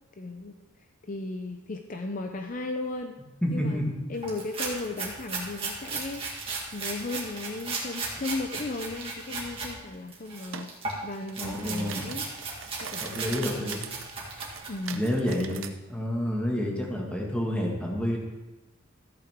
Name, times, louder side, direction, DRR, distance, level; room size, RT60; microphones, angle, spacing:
voice 1, 0.2-0.5 1.0-3.2 3.5-3.8 4.1-10.7 11.0-12.3 12.8-13.8 14.7-15.1, left 2 dB, 40° left, 5 dB, 0.5 m, -36 dB
voice 2, 3.4-3.9 11.4-12.2 13.0-13.9 14.9-15.6 15.9-18.2, equal, 5° left, -1 dB, 1.7 m, -29 dB
sound 1, 4.2-9.7 10.1-15.1, right 3 dB, 25° right, 2.0 m, -36 dB
sound 2, 10.5-10.7 11.1-15.7, right 7 dB, 75° right, 0.7 m, -41 dB
14.0 x 8.3 x 3.6 m, 1.1 s
head